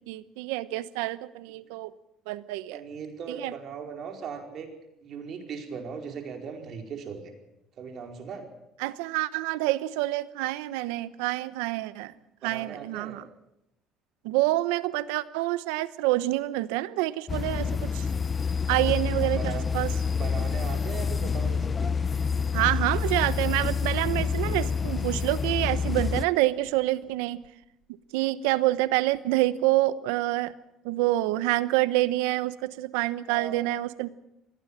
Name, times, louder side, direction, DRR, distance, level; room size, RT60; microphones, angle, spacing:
voice 1, 0.1-1.9 2.3-2.8 3.3-3.5 8.8-12.1 12.4-13.2 14.2-18.1 18.7-19.9 22.5-27.4 27.9-30.5 30.8-34.1, right 17 dB, 90° right, 16 dB, 1.0 m, -27 dB
voice 2, 2.7-4.7 5.0-7.3 7.8-8.5 12.4-13.2 18.7-18.9 19.2-19.7 20.1-21.9 33.3-33.7, right 6 dB, 55° right, 4 dB, 4.8 m, -38 dB
sound 1, 17.3-26.3, left 5 dB, 30° left, 0.8 m, -28 dB
21.0 x 16.5 x 9.0 m, 0.86 s
supercardioid pair, 85°, 0 cm